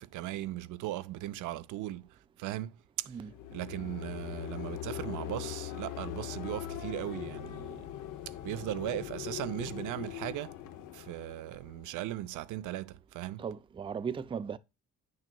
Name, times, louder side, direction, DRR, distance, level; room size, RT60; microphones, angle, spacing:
voice 1, 0.0-2.0 2.4-3.1 3.5-7.9 8.4-10.5 10.9-13.4, right 14 dB, 80° right, 0.5 m, -38 dB
sound 1, 3.2-12.2, left 13 dB, 85° left, 0.7 m, -41 dB
voice 2, 13.4-14.6, right 6 dB, 20° right, 0.3 m, -37 dB
9.8 x 6.3 x 2.2 m
cardioid pair, 90°, 30 cm